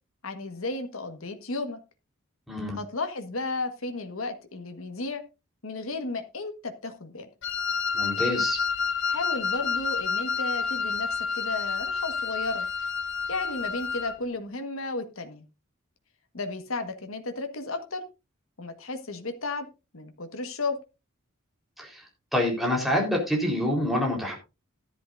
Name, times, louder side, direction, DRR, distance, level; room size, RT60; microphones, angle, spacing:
voice 1, 0.2-1.8 2.7-5.2 5.6-7.3 9.1-12.7 13.3-15.4 16.3-18.0 18.6-19.7 19.9-20.8, left 3 dB, 80° left, 7 dB, 1.5 m, -33 dB
voice 2, 2.5-2.8 7.9-8.6 21.8-22.0 22.3-24.3, left 1 dB, ahead, -1 dB, 4.0 m, -26 dB
Wind instrument woodwind instrument, 7.4-14.2, left 5 dB, 60° left, 1.1 m, -29 dB
14.5 x 11.0 x 2.6 m, 0.28 s
head